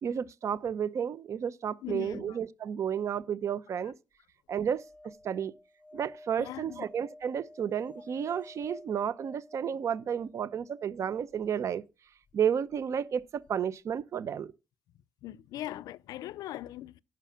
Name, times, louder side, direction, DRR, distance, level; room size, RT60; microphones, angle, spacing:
voice 1, 0.0-3.9 4.5-4.8 5.2-5.5 5.9-11.8 12.3-14.5, right 8 dB, 50° right, 0.7 m, -32 dB
voice 2, 1.8-2.4 6.4-6.9 15.2-17.0, left 14 dB, 80° left, 0.4 m, -40 dB
sound 1, 4.7-10.9 13.2-13.3 13.5-13.6, left 1 dB, 20° left, 1.3 m, -51 dB
11.5 x 4.8 x 7.3 m
cardioid pair, 110°, 6 cm